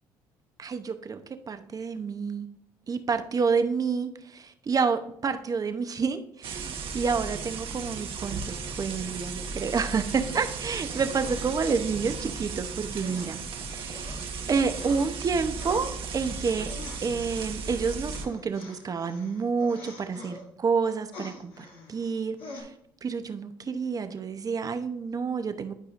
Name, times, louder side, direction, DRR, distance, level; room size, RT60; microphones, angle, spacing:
voice 1, 0.6-2.5 2.9-13.4 13.7-14.2 14.5-16.7 17.0-22.7 23.0-25.7, right 5 dB, 35° right, 9 dB, 0.8 m, -29 dB
sound 1, 6.4-18.3, right 5 dB, 60° right, 1.1 m, -36 dB
sound 2, 13.0-15.1 15.5-20.4 20.8-22.1 22.4-22.6, left 3 dB, 75° left, 2.6 m, -45 dB
11.5 x 4.8 x 2.5 m, 0.73 s
supercardioid pair, 75°, 10 cm